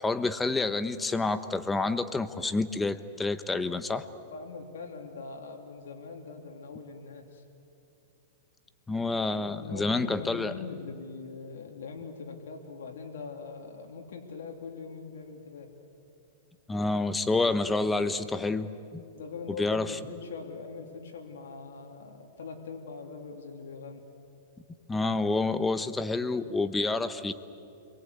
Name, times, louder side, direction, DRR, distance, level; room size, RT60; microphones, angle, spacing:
voice 1, 0.0-4.0 8.9-10.5 16.7-19.0 19.5-20.0 24.9-27.3, left 3 dB, 10° left, 12 dB, 1.0 m, -28 dB
voice 2, 4.1-7.4 9.5-15.7 17.4-17.6 19.1-24.0, left 4 dB, 85° left, 2 dB, 3.1 m, -42 dB
29.0 x 22.5 x 8.4 m, 2.8 s
hypercardioid pair, 145°, 0 cm